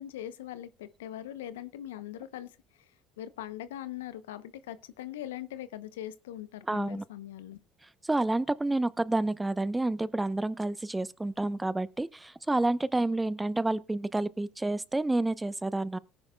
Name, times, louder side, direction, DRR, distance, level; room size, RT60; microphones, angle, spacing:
voice 1, 0.0-2.9 3.2-7.6, left 12 dB, 90° left, 0.7 m, -41 dB
voice 2, 6.7-7.0 8.0-16.0, right 2 dB, 10° right, 0.7 m, -29 dB
18.5 x 10.0 x 2.2 m
hypercardioid pair, 75°, 0 cm